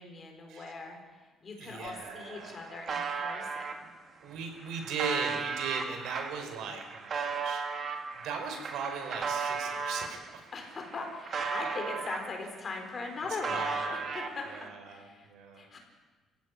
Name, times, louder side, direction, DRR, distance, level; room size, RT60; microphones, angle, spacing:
voice 1, 0.0-3.9 10.5-14.5 14.8-15.8, left 3 dB, 30° left, 3 dB, 4.5 m, -40 dB
voice 2, 1.6-2.8 4.2-7.7 8.2-10.4 13.5-14.2 14.5-15.7, right 5 dB, 80° right, 5 dB, 5.0 m, -38 dB
sound 1, 1.9-2.0 2.2-3.7 4.4-10.2 10.6-12.6 12.8-14.7, right 5 dB, 35° right, 2.2 m, -35 dB
29.0 x 16.0 x 9.7 m, 1.4 s
cardioid pair, 175°, 0 cm